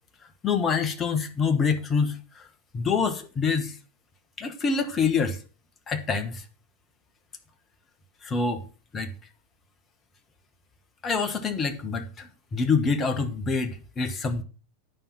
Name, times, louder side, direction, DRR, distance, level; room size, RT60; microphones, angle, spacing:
voice 1, 0.4-2.4 2.7-3.8 4.4-5.4 5.9-6.4 8.2-8.6 8.9-9.1 11.0-14.4, left 5 dB, 20° left, 1.3 m, -26 dB
9.2 x 5.5 x 6.0 m
figure-of-eight pair, 90°, 0 cm